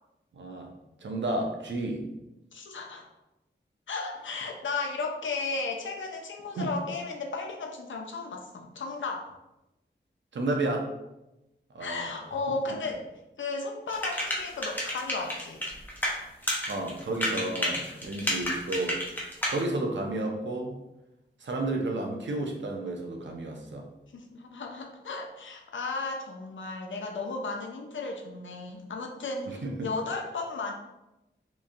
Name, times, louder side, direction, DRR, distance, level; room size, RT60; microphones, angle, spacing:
voice 1, 0.3-0.7 1.0-2.0 6.6-6.7 10.3-10.9 11.7-12.1 16.7-19.0 19.5-20.8 21.4-23.9 29.5-29.9, right 2 dB, 70° right, 2 dB, 0.5 m, -31 dB
voice 2, 2.5-3.0 3.9-9.3 11.8-13.1 13.4-15.6 24.1-30.7, left 3 dB, 80° left, 2 dB, 0.5 m, -34 dB
sound 1, 13.9-16.1 16.4-19.6, equal, 10° left, 0.7 m, -30 dB
2.9 x 2.5 x 2.4 m, 0.95 s
wide cardioid pair, 80°, 20 cm